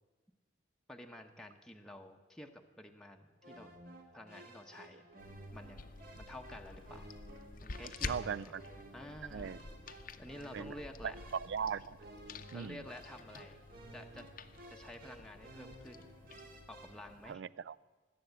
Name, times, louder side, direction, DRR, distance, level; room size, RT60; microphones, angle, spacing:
voice 1, 0.9-3.7 4.1-5.1 5.5-7.1 7.6-8.6 8.9-9.6 10.2-11.2 12.5-13.6 13.9-14.3 14.7-16.1 16.7-17.4, left 1 dB, 5° left, 2 dB, 0.8 m, -51 dB
sound 1, 3.4-17.1, right 1 dB, 55° right, 2.1 m, -55 dB
sound 2, 5.2-17.3, left 4 dB, 50° left, 0.7 m, -49 dB
voice 2, 8.0-8.6 9.3-9.6 10.5-10.7 11.0-12.0 12.5-12.8 17.3-17.8, right 7 dB, 75° right, 20 dB, 0.4 m, -39 dB
19.5 x 7.8 x 8.0 m, 1.3 s
head